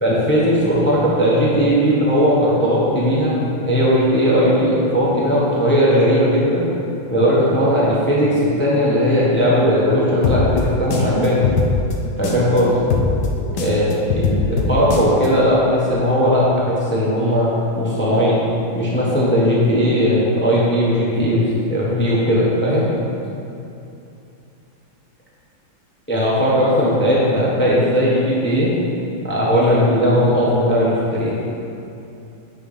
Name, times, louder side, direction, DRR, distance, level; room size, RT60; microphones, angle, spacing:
voice 1, 0.0-6.7 7.1-11.4 12.2-12.7 13.6-18.4 18.7-22.9 26.1-28.7 29.2-31.3, equal, 10° left, -7 dB, 0.8 m, -17 dB
sound 1, 10.2-12.6 12.9-15.3, left 4 dB, 70° left, 1.3 m, -21 dB
8.2 x 3.9 x 5.0 m, 2.7 s
omnidirectional pair, 2.1 m